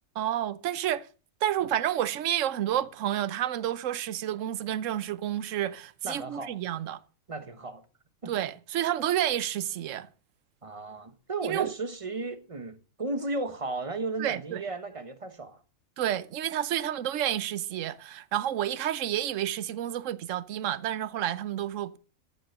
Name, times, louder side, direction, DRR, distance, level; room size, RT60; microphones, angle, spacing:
voice 1, 0.2-1.1 1.4-7.0 8.3-10.1 11.4-11.7 14.2-14.6 16.0-22.0, right 11 dB, 65° right, 1.1 m, -30 dB
voice 2, 6.0-6.6 7.3-7.9 8.2-8.3 10.6-15.6, right 3 dB, 25° right, 1.1 m, -34 dB
14.0 x 7.5 x 6.7 m
omnidirectional pair, 1.5 m